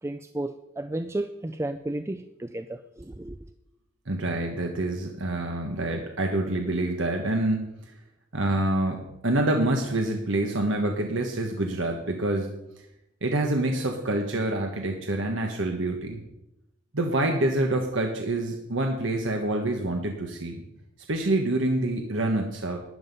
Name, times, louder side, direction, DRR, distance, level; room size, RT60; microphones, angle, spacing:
voice 1, 0.0-3.4, right 1 dB, 15° right, 9 dB, 0.4 m, -33 dB
voice 2, 4.1-7.7 8.3-12.5 13.2-16.2 16.9-20.6 21.1-22.8, right 1 dB, 70° right, 3 dB, 1.3 m, -26 dB
12.5 x 9.4 x 5.4 m, 0.86 s
head